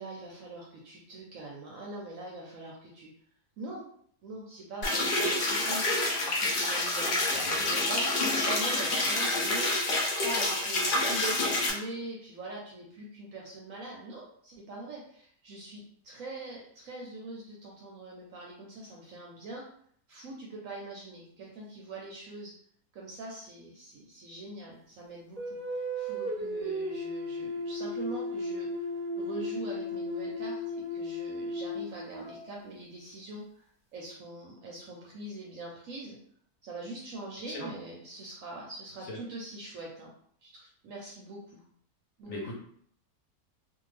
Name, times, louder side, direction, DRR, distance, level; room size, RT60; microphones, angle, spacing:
voice 1, 0.0-3.1 3.6-3.8 4.2-9.7 10.2-19.6 20.1-22.5 22.9-33.6 33.9-36.2 36.6-40.1 40.4-41.6 42.2-42.3, right 2 dB, 70° right, -2 dB, 0.8 m, -43 dB
sound 1, 4.8-11.7, left 2 dB, 75° left, 0.4 m, -28 dB
voice 2, 7.3-7.7 37.5-37.7 39.1-39.2 42.3-42.5, left 1 dB, 60° left, -2 dB, 1.0 m, -39 dB
sound 2, 25.4-32.7, left 1 dB, 30° right, 0.7 m, -35 dB
2.6 x 2.4 x 3.1 m, 0.63 s
omnidirectional pair, 1.8 m